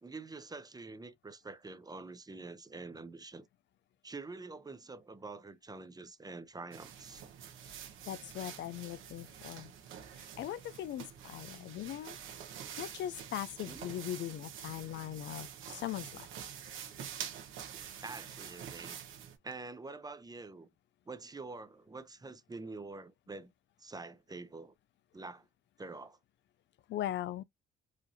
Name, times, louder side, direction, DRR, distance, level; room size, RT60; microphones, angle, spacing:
voice 1, 0.0-3.5 4.0-7.2 13.7-14.0 18.0-19.0 19.4-20.7 21.1-23.5 23.8-24.7 25.1-25.5 25.8-26.2, right 3 dB, 20° right, 0.7 m, -46 dB
sound 1, 6.7-19.4, right 8 dB, 85° right, 1.2 m, -47 dB
voice 2, 8.1-9.7 10.2-12.2 12.8-16.3 26.9-27.4, left 12 dB, 65° left, 0.4 m, -40 dB
5.0 x 2.6 x 2.7 m
cardioid pair, 90°, 20 cm